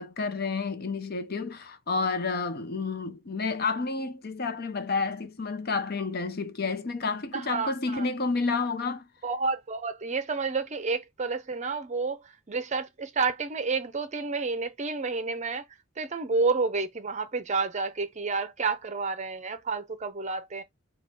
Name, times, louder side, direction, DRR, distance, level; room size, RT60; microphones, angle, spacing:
voice 1, 0.0-9.1, left 4 dB, 50° left, 0.7 m, -30 dB
voice 2, 7.3-8.1 9.2-15.6 16.0-20.6, right 4 dB, 35° right, 0.6 m, -30 dB
4.8 x 2.3 x 4.2 m
head